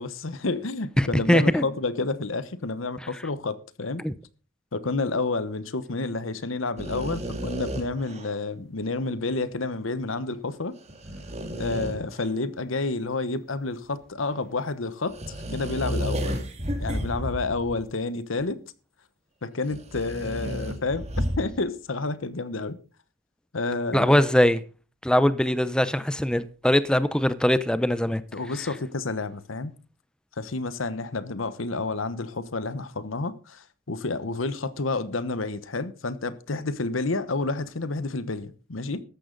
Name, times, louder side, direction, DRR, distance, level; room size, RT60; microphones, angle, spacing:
voice 1, 0.0-4.0 4.7-10.7 11.6-16.4 16.8-18.6 19.4-22.8 23.5-24.1 28.3-29.7 30.4-39.0, left 3 dB, 85° left, 1.0 m, -30 dB
voice 2, 1.0-1.7 4.0-4.1 23.9-24.6 25.0-28.2, equal, 5° left, 0.6 m, -21 dB
sound 1, 6.8-8.4 10.8-12.3 15.1-17.8 18.4-18.5 19.7-21.6, equal, 35° right, 2.2 m, -32 dB
14.0 x 11.5 x 3.9 m
head